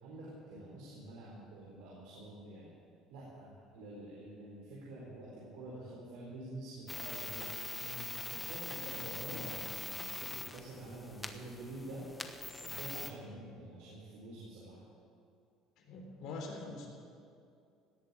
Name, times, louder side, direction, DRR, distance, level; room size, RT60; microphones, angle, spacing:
voice 1, 0.0-2.7 3.1-7.6 8.3-12.0 12.6-14.8, right 2 dB, 85° right, -5 dB, 3.9 m, -48 dB
sound 1, 6.9-13.1, left 2 dB, 15° left, 1.0 m, -43 dB
voice 2, 7.8-8.1 8.7-9.6 13.3-13.4 15.8-16.9, left 3 dB, 70° left, 1 dB, 3.8 m, -45 dB
17.5 x 7.7 x 8.9 m, 2.5 s
cardioid pair, 110°, 0 cm